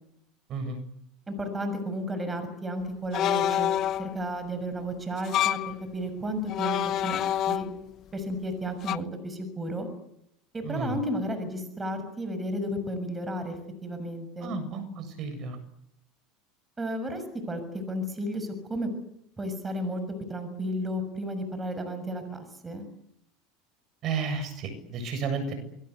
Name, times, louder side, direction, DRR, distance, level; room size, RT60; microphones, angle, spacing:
voice 1, 1.3-3.7 4.0-7.7 8.1-9.9 10.5-14.6 16.8-18.9 19.4-20.0 20.3-22.8, equal, 15° right, 9 dB, 6.7 m, -33 dB
sound 1, 3.1-4.2 5.2-5.7 6.5-7.9 8.8-9.0, left 12 dB, 45° left, 1.0 m, -27 dB
voice 2, 10.6-11.0 14.4-15.6 24.0-25.5, right 4 dB, 40° right, 10 dB, 7.7 m, -32 dB
28.5 x 22.5 x 8.2 m, 0.79 s
supercardioid pair, 130°, 0 cm